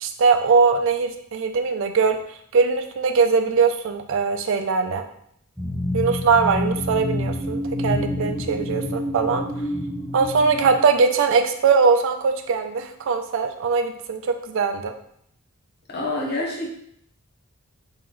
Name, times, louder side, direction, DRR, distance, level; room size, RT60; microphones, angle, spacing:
voice 1, 0.0-2.2 2.5-5.0 5.9-9.4 10.1-14.9, right 5 dB, 65° right, 6 dB, 0.4 m, -21 dB
sound 1, 5.6-11.1, left 1 dB, 5° right, 0.5 m, -28 dB
voice 2, 15.9-16.7, left 2 dB, 50° left, -1 dB, 0.9 m, -27 dB
3.0 x 3.0 x 3.7 m, 0.69 s
head